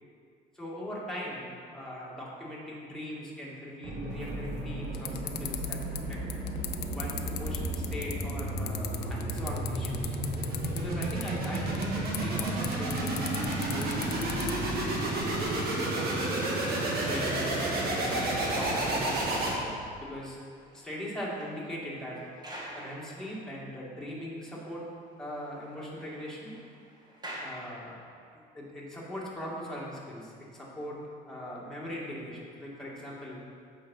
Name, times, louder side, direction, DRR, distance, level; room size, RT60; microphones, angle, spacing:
voice 1, 0.5-6.2 6.9-10.2 10.7-14.1 15.0-15.4 15.7-16.6 16.9-19.4 20.0-20.4 20.7-22.2 22.7-24.9 25.2-26.6 27.4-28.0 28.5-31.0 31.3-33.4, equal, 5° left, -6 dB, 2.2 m, -40 dB
sound 1, 3.8-19.9, right 2 dB, 65° right, 1.8 m, -31 dB
sound 2, 4.1-15.7, left 10 dB, 80° left, 0.6 m, -41 dB
sound 3, 20.3-24.0 24.3-24.4 24.8-24.9 25.1-28.4 29.1-29.3, equal, 25° right, 2.0 m, -48 dB
8.6 x 5.0 x 5.6 m, 2.3 s
cardioid pair, 110°, 17 cm